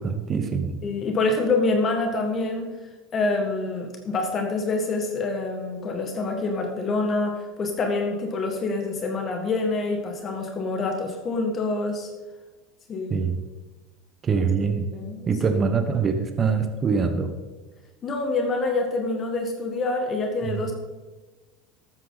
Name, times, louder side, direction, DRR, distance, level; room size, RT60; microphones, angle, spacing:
voice 1, 0.0-0.8 13.1-13.4 14.2-14.9 15.3-17.3 20.5-20.6, right 5 dB, 30° right, 7 dB, 1.2 m, -24 dB
voice 2, 0.8-2.7 3.1-12.1 12.9-13.1 14.9-15.6 18.0-20.7, left 3 dB, 35° left, 3 dB, 1.8 m, -26 dB
12.5 x 9.0 x 4.1 m, 1.2 s
supercardioid pair, 100°, 0 cm